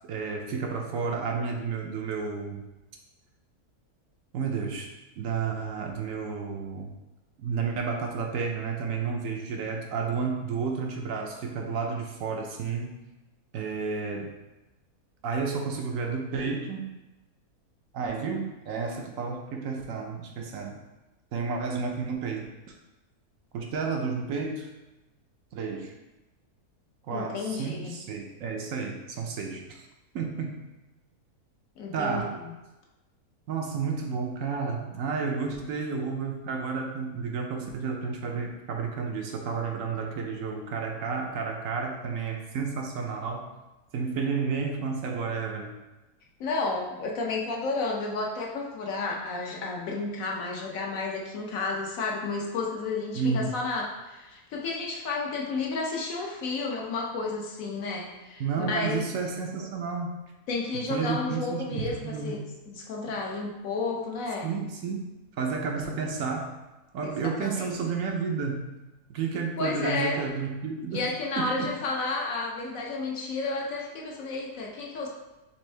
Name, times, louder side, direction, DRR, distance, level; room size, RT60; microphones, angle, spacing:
voice 1, 0.1-2.6 4.3-6.9 7.4-13.0 13.5-14.3 15.2-16.9 17.9-20.8 21.3-22.7 23.5-24.7 25.5-25.9 27.1-29.9 30.1-30.6 31.9-32.4 33.5-43.5 43.9-45.7 53.1-53.5 58.4-60.1 60.9-62.4 63.1-63.2 64.4-65.1 65.4-66.6 66.9-68.7 69.1-71.1 71.4-71.7, right 5 dB, 70° right, 2 dB, 0.9 m, -31 dB
voice 2, 27.1-28.0 31.8-32.2 46.4-59.0 60.5-64.5 67.0-67.1 67.4-67.7 69.6-70.2 70.9-75.1, left 3 dB, 65° left, -1 dB, 1.0 m, -32 dB
4.3 x 3.4 x 3.2 m, 1.0 s
omnidirectional pair, 1.7 m